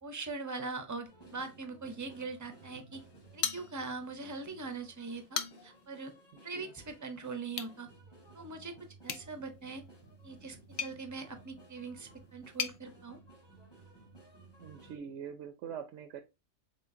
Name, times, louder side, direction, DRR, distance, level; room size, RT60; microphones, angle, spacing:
voice 1, 0.0-3.0 3.3-6.1 6.4-7.9 8.3-8.7 9.0-9.8 10.2-13.2, right 4 dB, 20° right, 7 dB, 0.5 m, -41 dB
sound 1, 1.0-15.0, right 3 dB, 20° left, 1.2 m, -57 dB
sound 2, 3.4-4.2 4.5-4.6 5.1-5.9 7.5-7.8 9.0-12.8, left 7 dB, 65° left, 0.9 m, -40 dB
voice 2, 6.4-6.7 14.6-16.2, right 8 dB, 75° right, 8 dB, 0.9 m, -44 dB
4.3 x 3.7 x 2.6 m, 0.25 s
omnidirectional pair, 1.3 m